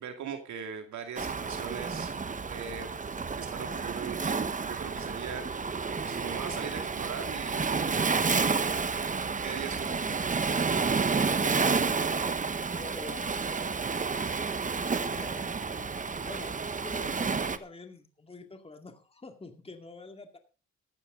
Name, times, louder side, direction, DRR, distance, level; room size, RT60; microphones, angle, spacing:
voice 1, 0.0-2.1 2.5-2.9 3.3-8.0 9.4-9.9, right 7 dB, 70° right, 5 dB, 2.3 m, -40 dB
Waves surf, 1.2-17.6, right 4 dB, 25° right, 1.1 m, -30 dB
voice 2, 9.5-10.4 11.4-12.3 12.7-13.8 14.8-16.5 16.8-20.4, left 3 dB, 20° left, 6 dB, 2.2 m, -46 dB
14.5 x 12.5 x 3.8 m, 0.33 s
cardioid pair, 90°, 30 cm